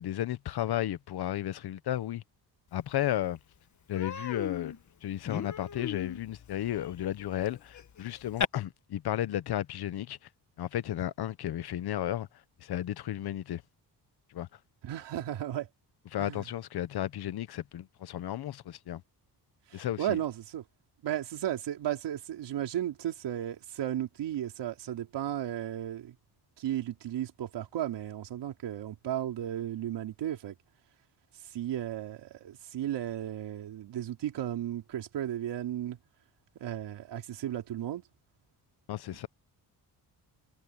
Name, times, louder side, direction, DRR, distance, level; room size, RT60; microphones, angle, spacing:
voice 1, 0.0-2.2 2.7-3.4 3.9-4.8 5.0-10.2 10.6-12.3 12.6-13.6 14.3-14.5 16.1-19.0 19.7-20.2 38.9-39.3, left 12 dB, 65° left, 1.0 m, -33 dB
Human voice, 2.9-3.0 3.4-3.6 3.9-8.4, left 8 dB, 45° left, 1.6 m, -37 dB
voice 2, 14.8-15.7 16.2-16.4 19.7-20.6 21.0-26.2 26.6-30.5 31.5-36.0 36.6-38.0, right 11 dB, 90° right, 4.0 m, -34 dB
cardioid pair, 130°, 41 cm